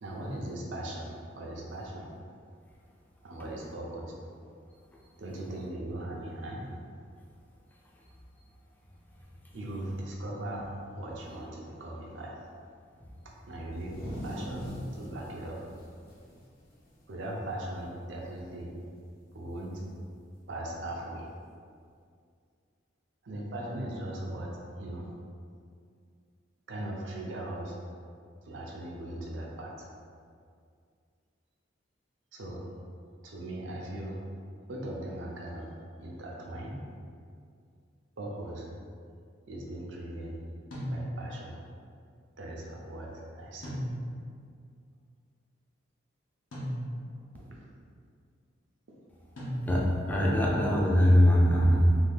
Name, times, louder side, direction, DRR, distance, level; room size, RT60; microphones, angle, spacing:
voice 1, 0.0-2.1 3.2-4.1 5.2-6.6 9.5-10.7 10.9-12.4 13.5-15.6 17.1-18.7 19.3-19.9 20.5-21.3 23.2-25.1 26.7-27.7 28.5-29.9 32.3-32.6 33.2-34.2 34.7-35.7 36.0-36.8 38.2-38.7 39.5-40.4 40.9-41.5 42.4-43.8 47.3-47.4 48.9-49.0, right 1 dB, 70° right, -2 dB, 0.6 m, -39 dB
sound 1, 13.6-17.3 17.6-17.8 18.1-18.6 19.7-19.8 20.9-21.0, equal, 50° left, 0.6 m, -42 dB
sound 2, 40.7-41.5 43.6-44.4 46.5-47.3 49.4-50.1, equal, 75° left, 0.8 m, -36 dB
voice 2, 49.6-52.0, equal, 10° left, -4 dB, 0.4 m, -22 dB
2.7 x 2.3 x 3.4 m, 2.3 s
head